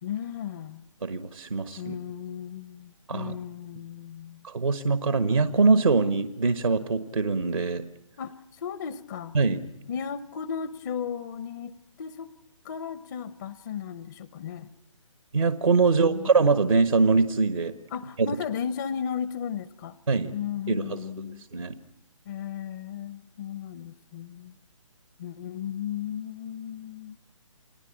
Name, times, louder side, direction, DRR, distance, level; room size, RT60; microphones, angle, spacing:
voice 1, 0.0-0.9 1.8-4.4 8.2-9.4 9.9-12.3 12.6-14.7 15.8-16.3 17.9-20.0 20.3-21.5 22.3-24.5 25.2-27.2, left 8 dB, 35° left, 15 dB, 0.8 m, -35 dB
voice 2, 1.0-2.0 3.1-3.4 4.4-7.8 9.3-9.6 15.3-17.7 20.1-20.3 20.7-21.0 21.5-21.7, right 4 dB, 80° right, 11 dB, 1.4 m, -23 dB
29.5 x 17.5 x 8.7 m, 0.94 s
figure-of-eight pair, 145°, 17 cm